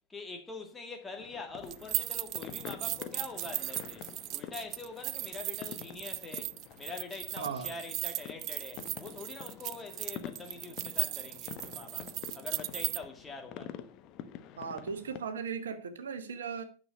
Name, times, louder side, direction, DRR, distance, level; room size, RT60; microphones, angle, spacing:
voice 1, 0.1-4.1 4.3-13.9, left 3 dB, 15° left, 2.1 m, -44 dB
sound 1, 1.2-15.2, left 10 dB, 40° left, 0.9 m, -47 dB
sound 2, 1.7-13.0, right 17 dB, 40° right, 0.4 m, -37 dB
voice 2, 7.4-7.7 14.6-16.6, right 6 dB, 65° right, 1.2 m, -37 dB
9.9 x 6.5 x 5.2 m
figure-of-eight pair, 90°, 0 cm